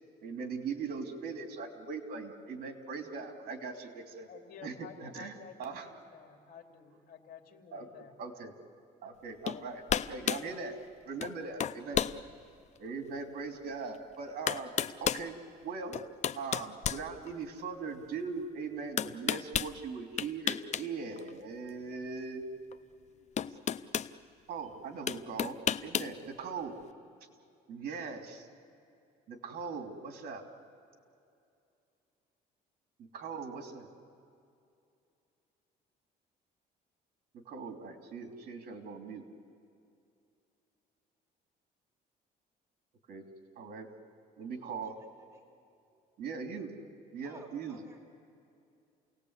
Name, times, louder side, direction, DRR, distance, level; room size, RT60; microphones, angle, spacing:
voice 1, 0.2-4.3 4.6-5.9 7.7-8.5 9.0-10.8 11.0-12.1 12.8-14.7 15.0-15.4 15.6-16.0 16.3-22.8 24.5-25.6 25.8-26.8 27.7-28.5 29.3-30.4 33.1-33.9 37.3-39.2 43.1-43.2 43.5-43.9 44.4-45.0 46.2-46.7 47.1-47.8, right 4 dB, 65° right, 4 dB, 3.1 m, -40 dB
voice 2, 4.2-8.2, left 7 dB, 60° left, 4 dB, 2.7 m, -52 dB
sound 1, 9.5-9.6 9.9-10.5 11.2-11.3 11.6-12.2 12.8-12.9 13.9-14.0 14.5-15.3 15.9-17.6 19.0-19.7 20.2-20.9 21.2-21.3 22.7-22.8 23.4-24.1 25.1-26.1, left 9 dB, 45° left, 0.6 m, -32 dB
voice 3, 44.4-45.5 45.9-46.0 47.2-48.0, right 2 dB, 15° right, 1 dB, 4.1 m, -56 dB
29.0 x 18.5 x 8.2 m, 2.6 s
cardioid pair, 110°, 17 cm